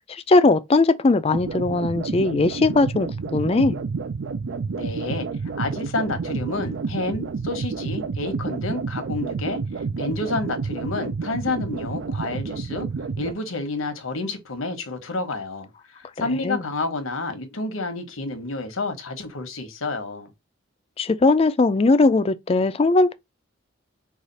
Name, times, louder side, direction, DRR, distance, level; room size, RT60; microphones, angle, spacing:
voice 1, 0.1-3.8 16.4-16.6 21.0-23.1, left 3 dB, 30° left, 0.4 m, -19 dB
sound 1, 1.3-13.3, right 4 dB, 65° right, 0.4 m, -29 dB
voice 2, 4.8-5.3 5.5-9.6 10.0-12.9 13.2-15.7 15.9-20.3, left 2 dB, 85° left, 1.1 m, -29 dB
4.8 x 2.4 x 4.0 m
head